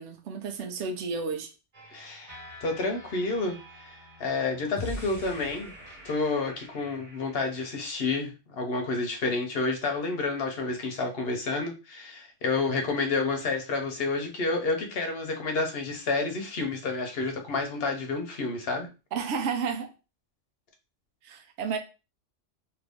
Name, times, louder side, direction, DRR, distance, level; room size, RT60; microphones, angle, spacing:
voice 1, 0.0-1.5 19.1-19.9 21.2-21.8, right 5 dB, 80° right, 0.9 m, -32 dB
sound 1, 1.7-7.9, left 1 dB, 45° right, 1.2 m, -44 dB
voice 2, 1.9-5.7 6.0-18.9, left 3 dB, 60° left, 0.9 m, -30 dB
2.7 x 2.6 x 3.4 m
omnidirectional pair, 1.2 m